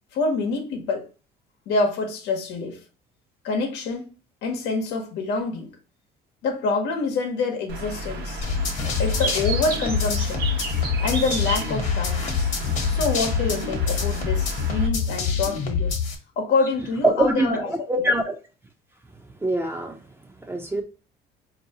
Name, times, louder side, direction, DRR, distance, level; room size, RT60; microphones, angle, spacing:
voice 1, 0.1-1.1 1.7-2.8 3.4-4.1 4.4-5.7 6.4-8.4 9.0-10.4 11.0-12.5 12.9-16.0 16.4-18.1, left 3 dB, 85° left, 0.9 m, -26 dB
Bird, 7.7-14.9, right 2 dB, 70° right, 0.9 m, -32 dB
sound 1, 8.4-16.1, left 6 dB, 45° left, 1.0 m, -25 dB
voice 2, 17.0-18.3 19.4-20.0 20.5-20.8, right 1 dB, 15° right, 0.7 m, -23 dB
4.5 x 2.7 x 2.8 m
cardioid pair, 110°, 17 cm